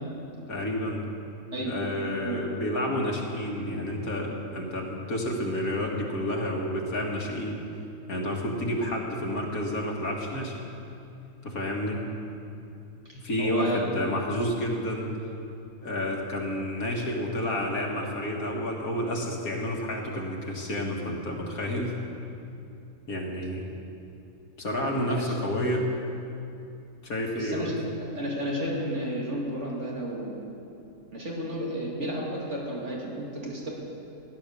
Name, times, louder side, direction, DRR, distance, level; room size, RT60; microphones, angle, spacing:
voice 1, 0.5-1.0 1.7-7.6 8.1-10.6 11.4-12.0 13.1-15.1 15.8-21.9 23.1-23.6 24.6-25.9 27.0-27.8, left 1 dB, 80° left, -1 dB, 2.3 m, -30 dB
voice 2, 13.1-13.9 25.1-25.2 27.3-27.7 28.0-30.4 31.1-33.7, right 1 dB, 55° right, -3 dB, 2.9 m, -32 dB
15.5 x 11.0 x 6.9 m, 2.7 s
omnidirectional pair, 1.5 m